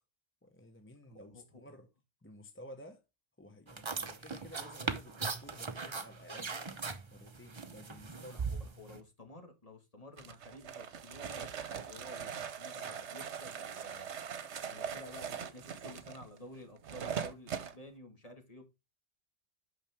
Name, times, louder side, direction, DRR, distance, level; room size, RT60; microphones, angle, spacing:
voice 1, 0.4-1.9 2.2-3.0 3.4-6.6 7.1-8.5, equal, 10° left, 0.8 m, -53 dB
voice 2, 1.1-1.6 8.1-14.1 14.6-18.6, left 1 dB, 30° left, 1.8 m, -52 dB
sound 1, 3.7-9.0, right 4 dB, 30° right, 0.7 m, -39 dB
sound 2, 10.2-17.7, right 7 dB, 70° right, 1.2 m, -41 dB
8.8 x 5.8 x 3.4 m
omnidirectional pair, 1.2 m